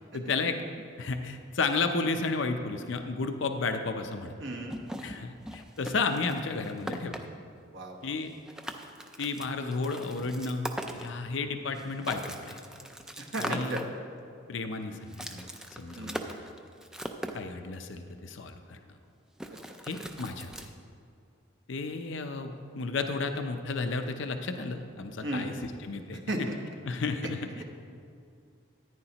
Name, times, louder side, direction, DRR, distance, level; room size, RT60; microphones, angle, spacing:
voice 1, 0.1-0.6 1.0-4.3 5.0-7.3 8.0-8.3 9.2-12.6 13.4-13.8 14.5-15.5 15.8-16.5 17.3-18.8 19.8-20.7 21.7-26.2 26.8-27.6, left 4 dB, 65° left, 6 dB, 0.6 m, -33 dB
voice 2, 4.4-4.8 7.7-8.0 13.2-13.8 15.9-16.2 25.2-25.5 26.3-26.5 27.6-27.7, right 1 dB, 60° right, 1 dB, 1.1 m, -34 dB
sound 1, 4.7-7.2 8.1-8.2 8.5-11.3 11.7-13.8 15.1-17.4 19.4-20.6, right 1 dB, 5° right, 0.4 m, -40 dB
14.0 x 9.8 x 2.9 m, 2.4 s
head